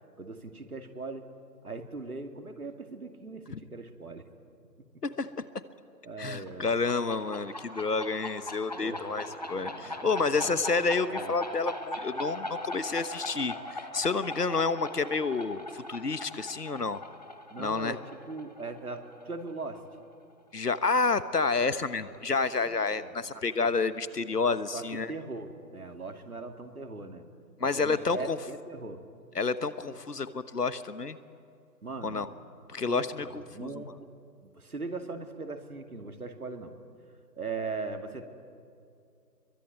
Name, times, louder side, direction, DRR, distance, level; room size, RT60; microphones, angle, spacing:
voice 1, 0.2-1.3 1.6-3.4 3.7-4.3 6.0-6.8 8.7-10.6 11.1-11.4 17.5-19.8 22.6-23.7 24.3-24.4 24.7-27.2 27.6-29.0 31.8-32.2 32.9-33.1 33.4-34.1 34.4-36.7 37.4-38.3, right 3 dB, 60° right, 6 dB, 2.4 m, -40 dB
voice 2, 5.0-5.4 6.2-17.0 17.6-18.0 20.5-25.1 27.6-28.4 29.3-31.2 32.0-32.3 32.7-33.8, left 4 dB, 65° left, 14 dB, 1.3 m, -29 dB
sound 1, 6.5-19.9, left 1 dB, 25° left, 1.1 m, -40 dB
23.0 x 22.0 x 9.3 m, 2.4 s
figure-of-eight pair, 165°, 50 cm